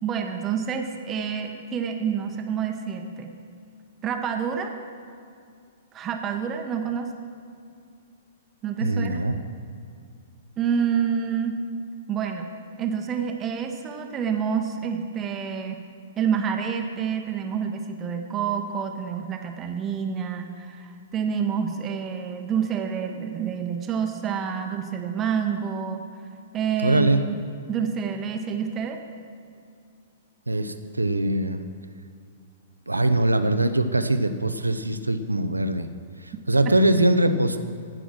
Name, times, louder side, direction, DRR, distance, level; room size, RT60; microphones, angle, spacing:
voice 1, 0.0-3.3 4.0-4.7 5.9-7.1 8.6-9.2 10.6-11.6 12.1-12.5 12.8-15.8 16.2-26.0 26.5-27.4 27.7-29.0 36.7-36.8, right 7 dB, 25° right, 5 dB, 0.9 m, -28 dB
voice 2, 8.8-9.4 26.8-27.2 30.5-31.6 32.9-35.9 36.5-37.6, right 1 dB, 85° right, 9 dB, 0.7 m, -22 dB
15.5 x 6.2 x 6.2 m, 2.3 s
figure-of-eight pair, 110°, 0 cm